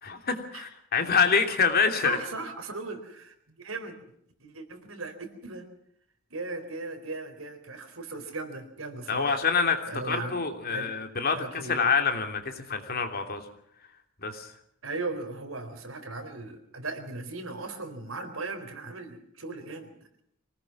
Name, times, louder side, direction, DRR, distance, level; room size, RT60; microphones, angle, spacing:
voice 1, 0.0-2.2 9.1-13.4 14.2-14.5, left 5 dB, 45° left, 5 dB, 2.9 m, -26 dB
voice 2, 2.0-4.0 4.4-5.7 6.3-9.4 9.8-10.4 10.7-10.9 11.3-11.9 14.8-19.9, right 3 dB, 75° right, 7 dB, 4.1 m, -37 dB
24.5 x 19.0 x 6.0 m, 0.71 s
head